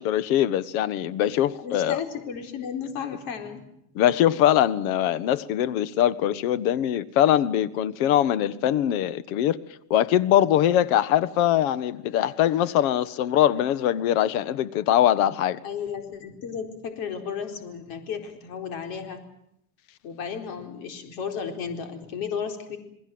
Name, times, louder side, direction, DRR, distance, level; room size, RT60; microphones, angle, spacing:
voice 1, 0.0-2.0 3.9-9.6 9.9-15.6, left 11 dB, 80° left, 1.5 m, -22 dB
voice 2, 1.6-3.7 15.6-19.2 20.0-22.8, left 7 dB, 55° left, 4.4 m, -34 dB
29.0 x 21.0 x 7.9 m
cardioid pair, 165°, 41 cm